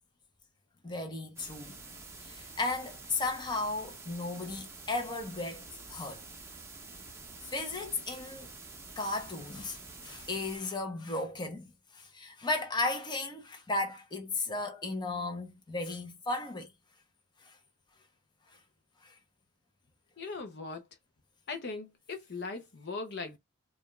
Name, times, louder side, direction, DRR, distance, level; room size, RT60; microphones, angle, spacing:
voice 1, 0.8-1.8 2.2-6.2 7.4-8.5 9.0-16.7 17.4-17.6 19.0-19.1, left 2 dB, 20° left, 0.9 m, -35 dB
sound 1, 1.4-10.6, right 3 dB, 10° right, 0.8 m, -48 dB
voice 2, 20.2-20.8 21.5-23.4, left 4 dB, 50° left, 0.7 m, -39 dB
4.9 x 2.5 x 2.3 m
head